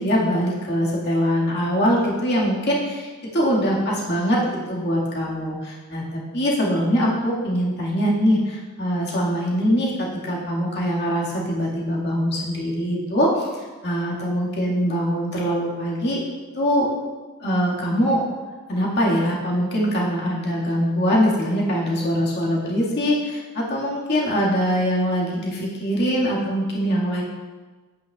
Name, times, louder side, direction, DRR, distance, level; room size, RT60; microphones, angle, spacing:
voice 1, 0.0-2.8 3.3-4.4 4.7-13.5 13.8-16.2 16.6-16.9 17.4-18.2 18.7-27.2, equal, 50° left, -5 dB, 1.9 m, -22 dB
8.9 x 8.8 x 2.4 m, 1.3 s
head